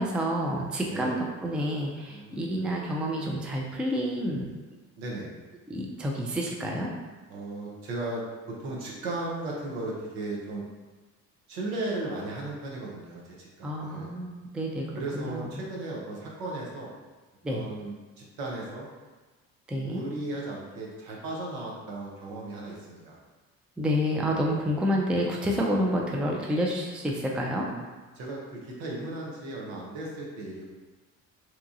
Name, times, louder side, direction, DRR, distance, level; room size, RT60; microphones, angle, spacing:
voice 1, 0.0-4.5 5.7-6.9 13.6-15.5 17.4-17.7 19.7-20.0 23.8-27.7, equal, 5° right, -1 dB, 0.4 m, -29 dB
voice 2, 2.1-2.6 5.0-5.3 7.3-8.2 8.5-10.7 11.5-14.1 15.0-16.9 17.5-18.9 19.7-23.2 27.7-27.9 28.1-30.6, right 2 dB, 75° right, -3 dB, 0.9 m, -36 dB
2.9 x 2.3 x 2.6 m, 1.2 s
hypercardioid pair, 55°, 41 cm